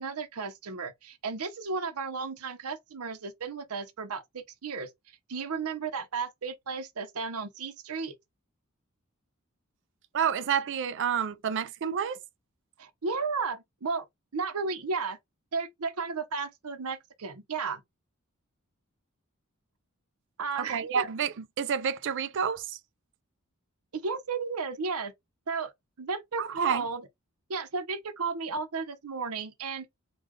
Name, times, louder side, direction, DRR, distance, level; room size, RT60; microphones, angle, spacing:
voice 1, 0.0-4.9 5.3-8.2 12.8-14.1 14.3-15.2 15.5-17.8 20.4-21.1 23.9-25.1 25.5-25.7 26.0-27.0 27.5-29.9, right 4 dB, 80° right, 0.8 m, -34 dB
voice 2, 10.1-12.2 20.6-22.8 26.4-26.8, right 7 dB, 55° right, 0.4 m, -29 dB
3.7 x 2.3 x 3.1 m
head